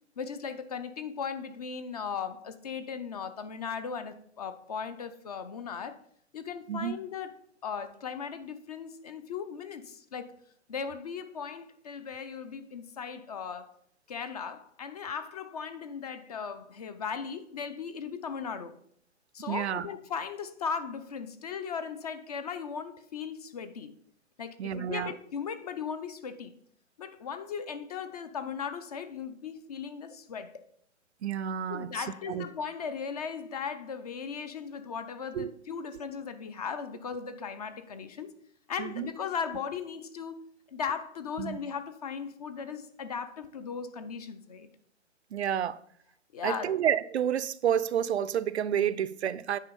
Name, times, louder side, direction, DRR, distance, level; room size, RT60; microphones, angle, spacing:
voice 1, 0.2-6.0 6.3-7.3 7.6-10.3 10.7-13.7 14.1-18.8 19.3-23.9 24.4-26.5 27.0-30.5 31.7-38.3 38.7-44.7 46.3-46.7, left 6 dB, 30° left, 0.6 m, -37 dB
voice 2, 19.5-19.9 24.6-25.1 31.2-32.5 35.3-35.5 38.8-39.1 41.4-41.6 45.3-45.8 46.4-49.6, right 9 dB, 60° right, 0.5 m, -30 dB
9.1 x 4.7 x 5.3 m
hypercardioid pair, 150°, 38 cm